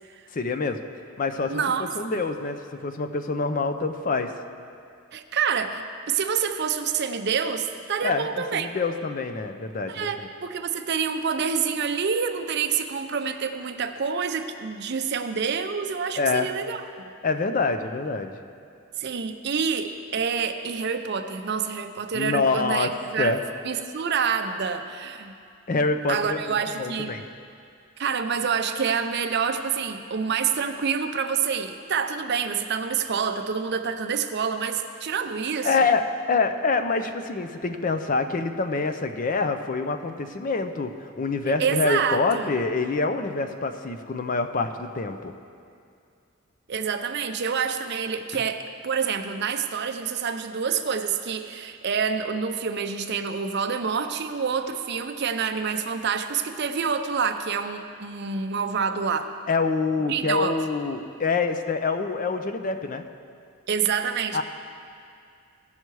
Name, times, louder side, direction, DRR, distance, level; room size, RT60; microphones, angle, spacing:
voice 1, 0.3-0.8 1.2-2.6 2.8-4.3 8.0-10.3 16.2-16.5 17.2-18.3 22.1-22.9 23.2-23.4 25.7-26.4 26.8-27.2 35.6-36.0 36.3-45.3 59.5-63.0 64.3-64.4, left 4 dB, 40° left, 8 dB, 0.5 m, -26 dB
voice 2, 1.5-2.2 5.1-8.7 9.9-17.0 19.0-23.4 23.6-25.3 26.1-27.1 28.0-35.7 41.6-42.5 46.7-59.3 60.1-60.6 63.7-64.4, right 6 dB, 50° right, 7 dB, 0.5 m, -27 dB
16.5 x 5.6 x 4.7 m, 2.4 s
head